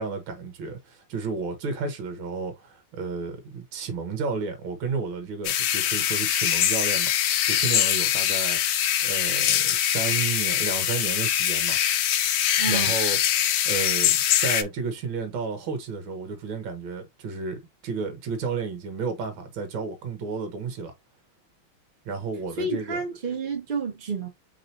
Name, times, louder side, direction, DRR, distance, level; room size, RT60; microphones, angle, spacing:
voice 1, 0.0-7.2 7.5-11.8 12.6-20.9 22.1-23.0, right 5 dB, 75° right, 2.0 m, -32 dB
sound 1, 5.4-14.6, left 11 dB, 80° left, 0.8 m, -23 dB
voice 2, 12.6-12.9 22.6-24.3, right 4 dB, 25° right, 1.4 m, -29 dB
4.8 x 3.8 x 2.7 m
omnidirectional pair, 2.3 m